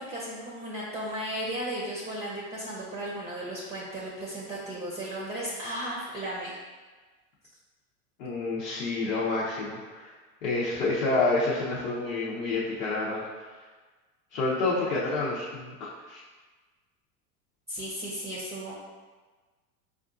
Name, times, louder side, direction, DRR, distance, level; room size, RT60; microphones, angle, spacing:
voice 1, 0.0-6.6 17.7-18.7, right 1 dB, 15° right, -5 dB, 0.7 m, -35 dB
voice 2, 8.2-10.1 10.4-13.2 14.3-15.7 16.1-16.2, left 3 dB, 75° left, -7 dB, 0.9 m, -28 dB
5.0 x 2.4 x 2.5 m, 1.3 s
hypercardioid pair, 100°, 47 cm